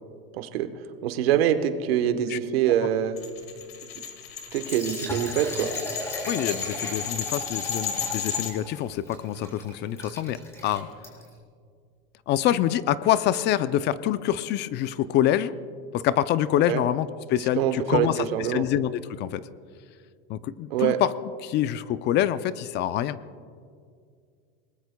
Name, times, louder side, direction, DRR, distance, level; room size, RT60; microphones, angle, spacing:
voice 1, 0.3-0.7 1.0-3.2 4.5-5.7 16.7-16.8 17.6-18.6 20.7-21.0, right 10 dB, 85° right, 9 dB, 1.2 m, -24 dB
sound 1, 3.2-8.5, left 8 dB, 90° left, 2.0 m, -33 dB
Liquid, 4.5-11.4, equal, 10° left, 3.9 m, -38 dB
voice 2, 6.3-10.9 12.3-15.6 15.9-19.4 20.3-21.1 21.4-23.2, left 12 dB, 35° left, 15 dB, 0.5 m, -26 dB
25.0 x 19.5 x 2.3 m, 2.2 s
supercardioid pair, 130°, 29 cm